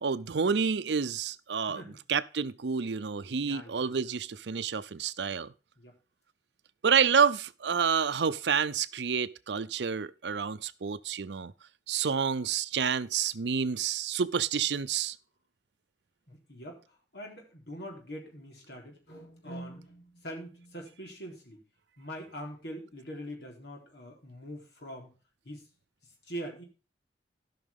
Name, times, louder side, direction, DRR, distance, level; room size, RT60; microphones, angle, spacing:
voice 1, 0.0-1.8 2.1-5.5 6.8-11.5 11.9-15.2, right 6 dB, 75° right, 0.6 m, -29 dB
voice 2, 3.4-4.0 5.8-5.9 16.3-16.8 17.1-21.6 22.0-25.1 25.4-25.6 26.3-26.6, equal, 65° left, 4.0 m, -43 dB
16.5 x 5.9 x 3.5 m
head